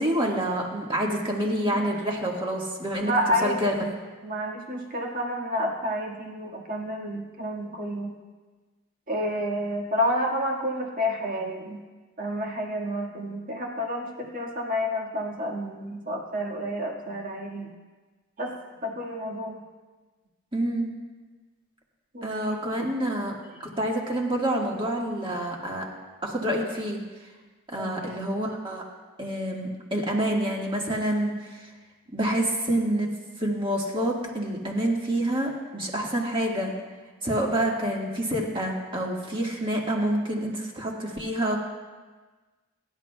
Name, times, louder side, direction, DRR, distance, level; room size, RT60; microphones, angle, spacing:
voice 1, 0.0-3.1 3.4-3.7 20.5-20.9 22.2-23.3 23.8-25.8 26.2-27.0 27.7-28.8 29.2-31.6 32.1-33.1 33.4-36.7 37.2-41.6, right 1 dB, 25° right, -1 dB, 1.7 m, -27 dB
voice 2, 1.7-2.1 3.0-3.9 4.2-8.1 9.1-11.8 12.2-17.7 18.4-18.5 18.8-19.6 22.1-22.8 27.8-28.2, equal, 40° right, -1 dB, 1.8 m, -30 dB
22.5 x 11.0 x 2.3 m, 1.3 s
head